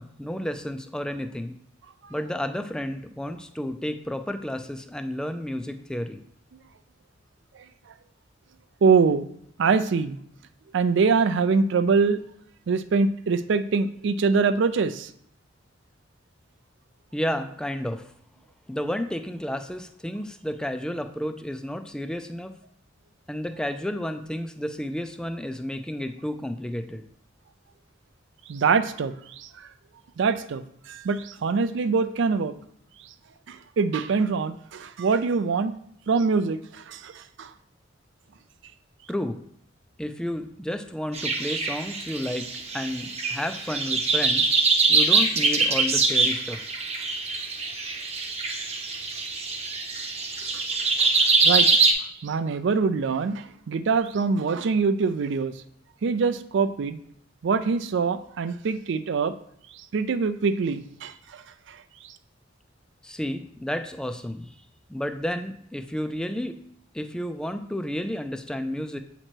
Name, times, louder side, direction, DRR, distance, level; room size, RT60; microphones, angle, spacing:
voice 1, 0.0-1.5 2.1-6.2 17.1-18.0 18.7-22.5 23.3-27.0 39.1-39.4 40.0-42.5 42.7-44.5 44.9-46.6 63.0-64.6 64.9-66.6 66.9-69.0, equal, 5° left, 8 dB, 0.4 m, -31 dB
voice 2, 8.8-9.3 9.6-10.2 10.7-12.2 12.7-15.1 28.5-29.1 29.4-29.5 30.2-30.6 30.9-32.5 33.5-35.7 36.1-37.5 50.5-50.6 51.0-51.1 51.4-51.7 52.2-55.5 56.0-57.0 57.4-59.3 59.9-61.1, right 5 dB, 70° right, 13 dB, 0.4 m, -24 dB
sound 1, 41.1-51.9, right 3 dB, 35° right, 0.8 m, -23 dB
7.7 x 3.0 x 4.4 m, 0.68 s
head